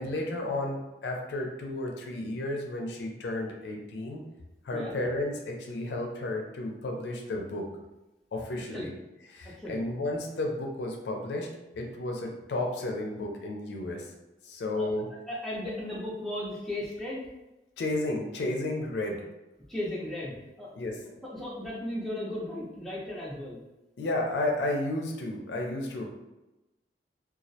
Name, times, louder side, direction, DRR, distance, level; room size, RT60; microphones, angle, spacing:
voice 1, 0.0-4.2 4.6-7.7 8.3-8.9 9.2-11.5 11.8-14.1 14.4-15.1 17.8-19.2 20.8-21.0 24.0-26.1, left 2 dB, 75° left, 1 dB, 0.4 m, -32 dB
voice 2, 9.4-9.8 14.7-14.9 15.3-17.2 19.7-20.8 21.2-23.6, left 1 dB, ahead, -6 dB, 0.5 m, -36 dB
2.2 x 2.0 x 2.6 m, 1.0 s
head